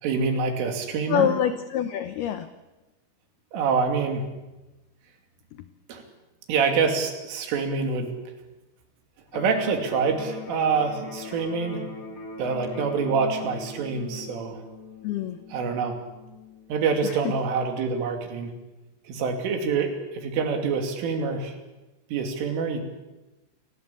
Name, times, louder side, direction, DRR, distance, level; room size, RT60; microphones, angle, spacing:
voice 1, 0.0-1.3 3.5-4.3 5.9-6.0 6.5-8.1 9.3-11.8 12.4-14.6 15.5-16.0 16.7-18.5 19.1-21.6 22.1-22.8, right 5 dB, 75° right, 4 dB, 5.2 m, -26 dB
voice 2, 1.1-2.5 5.5-5.7 15.0-15.4 17.0-17.2, left 10 dB, 90° left, 10 dB, 2.2 m, -26 dB
Electric guitar, 9.3-17.3, left 3 dB, 45° left, 1.0 m, -40 dB
27.0 x 18.5 x 8.6 m, 1.1 s
omnidirectional pair, 5.9 m